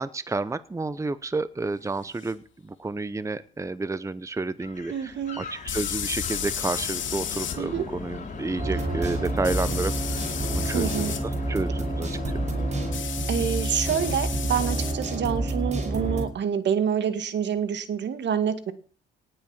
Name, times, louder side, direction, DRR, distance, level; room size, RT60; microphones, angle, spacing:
voice 1, 0.0-10.2 10.5-11.1 11.5-12.2, right 3 dB, 15° right, 16 dB, 0.8 m, -30 dB
sound 1, 2.2-2.3 5.7-7.6 9.4-11.2 12.9-15.0, left 9 dB, 70° left, 2.6 m, -33 dB
sound 2, 4.6-12.9, left 4 dB, 40° left, 5.8 m, -38 dB
voice 2, 4.9-5.4 7.6-7.9 10.7-11.1 13.3-18.7, right 8 dB, 65° right, 12 dB, 2.1 m, -27 dB
sound 3, 8.6-16.3, right 2 dB, 35° right, 5.5 m, -29 dB
18.5 x 7.9 x 7.3 m, 0.42 s
cardioid pair, 90°, 20 cm